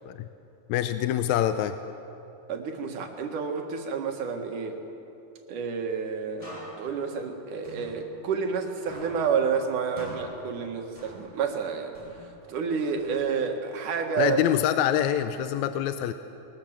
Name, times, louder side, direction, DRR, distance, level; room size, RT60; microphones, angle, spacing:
voice 1, 0.7-1.8 14.2-16.1, left 11 dB, 80° left, 10 dB, 1.8 m, -25 dB
voice 2, 2.5-4.8 5.5-6.5 6.8-11.9 12.5-14.4, right 6 dB, 75° right, 3 dB, 3.2 m, -29 dB
sound 1, 6.4-8.6 8.9-11.6 11.9-13.6, equal, 10° left, 7.4 m, -46 dB
21.5 x 20.5 x 7.4 m, 2.9 s
omnidirectional pair, 3.7 m